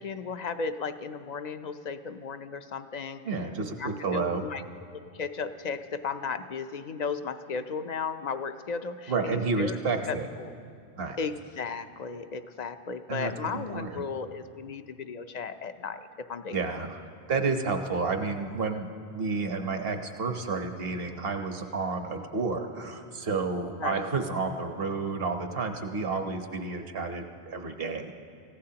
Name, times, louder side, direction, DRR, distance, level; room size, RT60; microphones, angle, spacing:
voice 1, 0.0-3.4 3.8-4.6 5.1-9.8 10.1-10.5 11.2-16.7 23.8-24.0, left 5 dB, 50° left, 10 dB, 0.6 m, -35 dB
voice 2, 3.2-4.4 9.1-10.3 11.0-11.2 13.1-14.0 16.5-17.0 17.3-28.2, right 4 dB, 60° right, 5 dB, 1.2 m, -30 dB
28.0 x 15.5 x 2.9 m, 2.3 s
omnidirectional pair, 1.1 m